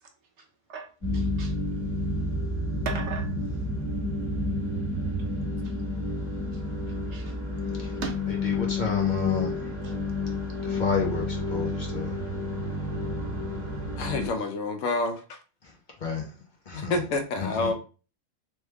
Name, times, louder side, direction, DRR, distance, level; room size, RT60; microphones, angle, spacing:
voice 1, 0.4-0.9 1.1-1.6 2.8-3.3 5.6-5.7 6.5-6.6 6.9-7.4 7.9-8.2 9.8-9.9, right 5 dB, 60° right, 0.9 m, -38 dB
sound 1, 1.0-14.3, left 2 dB, 20° left, 2.0 m, -30 dB
voice 2, 8.3-9.8 10.6-12.2 15.6-15.7 16.0-16.3 16.7-17.0 17.4-17.7, left 5 dB, 40° left, 0.9 m, -31 dB
voice 3, 14.0-15.4 16.7-17.7, left 3 dB, 70° left, 1.0 m, -28 dB
3.1 x 3.1 x 3.3 m
omnidirectional pair, 1.4 m